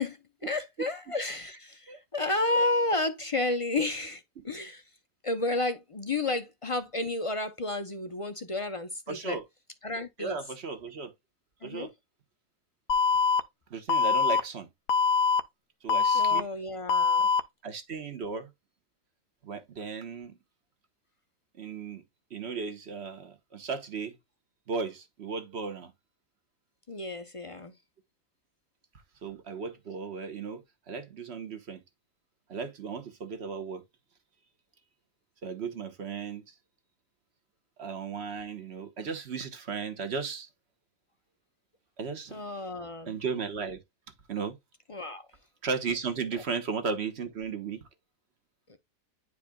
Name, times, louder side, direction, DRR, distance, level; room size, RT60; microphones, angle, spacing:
voice 1, 0.0-4.8 5.2-9.4 9.8-10.4 11.6-11.9 16.1-17.3 26.9-27.7 42.3-43.2 44.9-45.3 48.7-48.8, left 2 dB, 40° left, 0.4 m, -31 dB
voice 2, 9.1-9.4 10.2-11.1 11.6-11.9 13.7-14.7 15.8-16.4 17.6-18.5 19.4-20.4 21.6-22.0 22.3-24.1 24.7-25.9 29.2-31.8 32.5-33.8 35.4-36.4 37.8-40.5 42.0-42.4 43.1-43.8 44.3-44.6 45.6-47.8, right 5 dB, 45° right, 1.4 m, -35 dB
Alarm, 12.9-13.4 13.9-14.4 14.9-15.4 15.9-16.4 16.9-17.4, left 5 dB, 65° left, 1.1 m, -23 dB
10.0 x 4.9 x 2.3 m
omnidirectional pair, 1.7 m